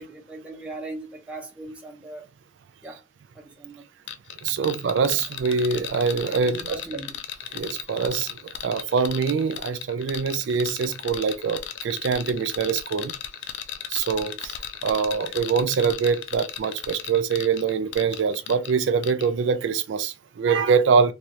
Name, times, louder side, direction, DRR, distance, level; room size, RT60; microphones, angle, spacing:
voice 1, 0.0-2.3 2.8-3.0 3.3-3.9 6.4-7.2, right 2 dB, 5° right, 0.8 m, -39 dB
sound 1, 4.1-18.7 19.0-19.3, left 10 dB, 75° left, 0.4 m, -36 dB
voice 2, 4.4-6.8 7.5-8.3 8.6-13.1 13.9-14.5 14.8-21.1, right 5 dB, 80° right, 0.4 m, -24 dB
3.1 x 2.4 x 2.8 m
head